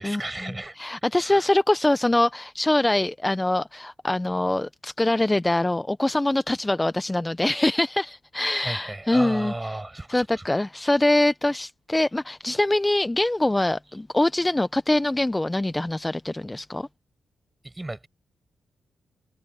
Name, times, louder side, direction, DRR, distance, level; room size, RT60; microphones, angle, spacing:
voice 1, 0.0-0.8 1.2-1.5 8.6-10.5 17.6-18.1, right 2 dB, 15° right, 6.6 m, -34 dB
voice 2, 0.8-9.5 10.1-16.9, left 1 dB, 10° left, 0.5 m, -23 dB
cardioid pair, 115°, 0 cm